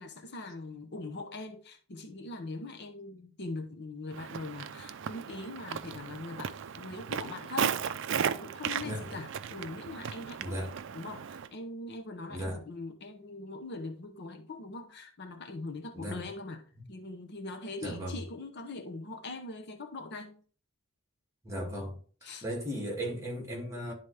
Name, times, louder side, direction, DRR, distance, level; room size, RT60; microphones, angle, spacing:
voice 1, 0.0-7.8 8.3-10.6 10.9-16.6 16.9-20.4 22.2-22.4, left 2 dB, 55° left, 0.9 m, -42 dB
Walk footsteps, 4.1-11.5, right 7 dB, 60° right, 0.4 m, -36 dB
voice 2, 12.3-12.6 15.9-16.2 17.8-18.2 21.4-21.9 22.4-23.9, equal, 15° right, 2.2 m, -36 dB
11.5 x 4.0 x 3.3 m
head